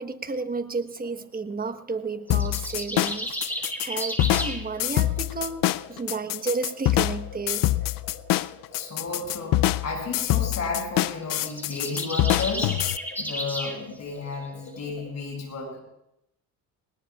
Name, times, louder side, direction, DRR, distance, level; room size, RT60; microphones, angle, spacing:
voice 1, 0.0-7.9, right 4 dB, 25° right, 9 dB, 1.2 m, -32 dB
sound 1, 0.7-15.0, left 4 dB, 80° left, 5.9 m, -49 dB
sound 2, 2.3-13.0, left 16 dB, 65° left, 0.5 m, -25 dB
sound 3, 2.3-4.6 11.2-13.8, equal, 5° left, 3.2 m, -33 dB
voice 2, 8.7-12.8 13.2-15.8, left 4 dB, 45° left, 1 dB, 6.9 m, -33 dB
20.5 x 20.0 x 2.4 m, 0.80 s
supercardioid pair, 80°, 37 cm